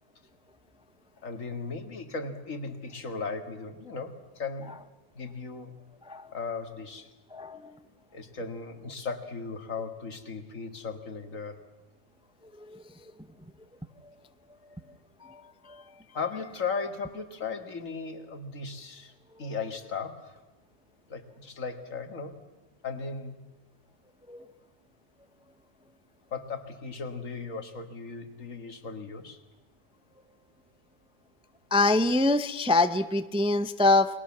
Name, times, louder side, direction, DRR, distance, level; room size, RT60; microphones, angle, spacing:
voice 1, 1.2-4.8 5.2-5.7 6.3-7.1 8.1-11.7 16.1-19.1 19.4-20.4 21.1-22.4 22.8-23.4 26.3-29.4, left 4 dB, 70° left, 8 dB, 2.3 m, -37 dB
voice 2, 31.7-34.1, left 2 dB, 5° right, 11 dB, 0.6 m, -24 dB
29.5 x 21.5 x 7.4 m, 1.2 s
omnidirectional pair, 1.4 m